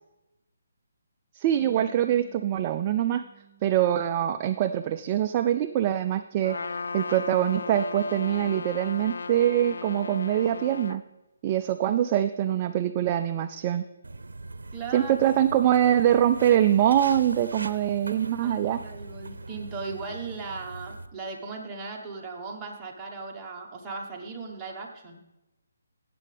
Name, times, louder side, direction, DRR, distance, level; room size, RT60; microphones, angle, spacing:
voice 1, 1.4-3.2 3.6-6.6 6.9-11.0 11.4-13.8 14.9-18.8, right 11 dB, 25° right, 7 dB, 0.3 m, -24 dB
Bass guitar, 1.6-7.8, right 6 dB, 55° left, 2.8 m, -58 dB
Trumpet, 6.4-11.0, left 4 dB, 80° left, 0.4 m, -36 dB
Walk footsteps, 14.0-21.1, right 3 dB, 85° right, 0.6 m, -41 dB
voice 2, 14.7-15.4 18.4-25.2, right 4 dB, 10° right, -3 dB, 1.3 m, -38 dB
15.5 x 7.6 x 3.4 m, 0.97 s
hypercardioid pair, 155°, 0 cm